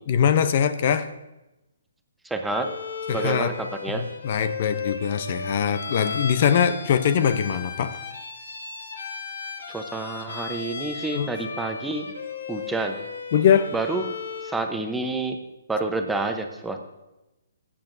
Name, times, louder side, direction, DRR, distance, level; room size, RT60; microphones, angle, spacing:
voice 1, 0.1-1.1 3.1-3.5 3.9-8.0 11.1-11.3 13.3-13.7, left 8 dB, 45° left, 12 dB, 0.6 m, -22 dB
voice 2, 2.2-2.7 3.1-3.5 3.8-4.0 9.7-12.0 12.5-13.0 13.7-15.4 15.7-16.8, right 3 dB, 5° right, 4 dB, 0.7 m, -28 dB
Bowed string instrument, 2.5-14.7, left 5 dB, 75° left, 1.3 m, -35 dB
15.5 x 8.6 x 2.6 m, 0.97 s
hypercardioid pair, 150°, 0 cm